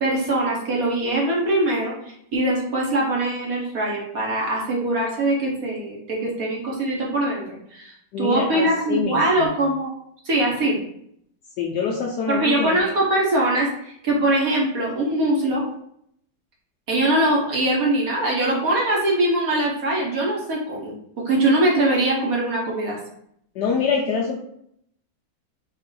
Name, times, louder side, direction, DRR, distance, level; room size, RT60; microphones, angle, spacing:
voice 1, 0.0-1.9 2.3-9.9 10.2-10.8 12.3-15.6 16.9-20.9 21.2-23.0, right 1 dB, 55° right, -3 dB, 1.1 m, -22 dB
voice 2, 8.1-9.5 11.6-12.9 23.6-24.4, left 5 dB, 75° left, -1 dB, 1.0 m, -25 dB
4.7 x 2.4 x 3.8 m, 0.71 s
omnidirectional pair, 2.2 m